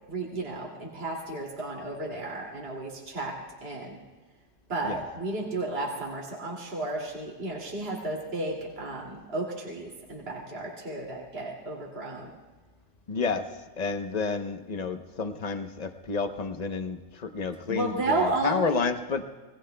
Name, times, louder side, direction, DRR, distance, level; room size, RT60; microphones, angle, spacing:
voice 1, 0.1-3.3 3.6-4.0 4.7-12.3 17.7-18.8, right 2 dB, 35° right, -3 dB, 2.7 m, -33 dB
voice 2, 13.1-13.4 13.8-19.2, left 4 dB, 45° left, 7 dB, 0.5 m, -30 dB
28.0 x 21.5 x 2.3 m, 1.3 s
omnidirectional pair, 1.9 m